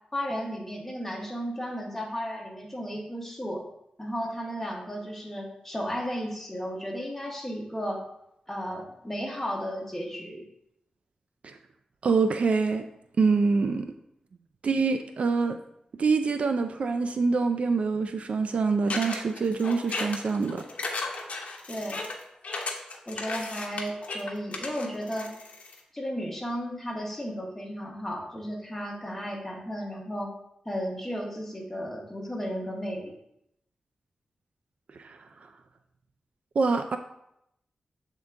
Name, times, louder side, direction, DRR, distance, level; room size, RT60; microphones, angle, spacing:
voice 1, 0.1-3.6 4.0-8.0 8.5-10.5 21.7-22.0 23.1-25.3 25.9-30.3 30.6-33.2, equal, 10° left, -1 dB, 1.3 m, -34 dB
voice 2, 12.0-12.9 13.2-13.9 14.6-15.6 16.0-20.6 35.0-35.2 36.6-37.0, right 4 dB, 55° right, 8 dB, 0.3 m, -25 dB
sound 1, 18.9-25.8, left 3 dB, 65° left, 0.9 m, -35 dB
7.4 x 3.7 x 3.5 m, 0.79 s
wide cardioid pair, 120°, 2 cm